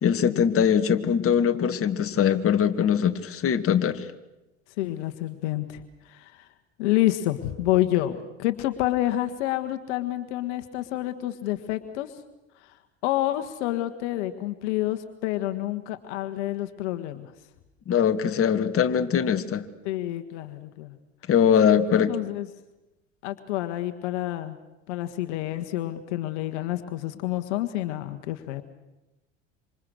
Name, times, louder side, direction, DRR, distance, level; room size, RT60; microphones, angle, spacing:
voice 1, 0.0-4.1 17.9-19.7 21.3-22.2, left 8 dB, 35° left, 7 dB, 2.0 m, -22 dB
voice 2, 4.8-6.5 6.8-12.1 13.0-17.3 19.9-21.0 21.6-22.5 23.2-24.6 24.9-28.6, left 15 dB, 65° left, 8 dB, 1.7 m, -28 dB
27.0 x 26.0 x 6.5 m, 1.0 s
hypercardioid pair, 75°, 37 cm